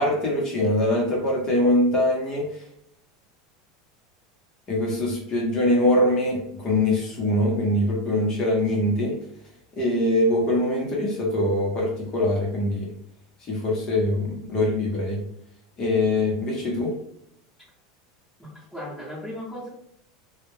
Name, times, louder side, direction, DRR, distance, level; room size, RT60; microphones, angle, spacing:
voice 1, 0.0-2.6 4.7-9.1 9.7-12.9 13.5-15.2 15.8-16.9, left 1 dB, 35° left, -2 dB, 0.8 m, -23 dB
voice 2, 18.4-19.7, left 1 dB, ahead, -10 dB, 1.0 m, -36 dB
2.2 x 2.1 x 3.2 m, 0.72 s
supercardioid pair, 125°, 2 cm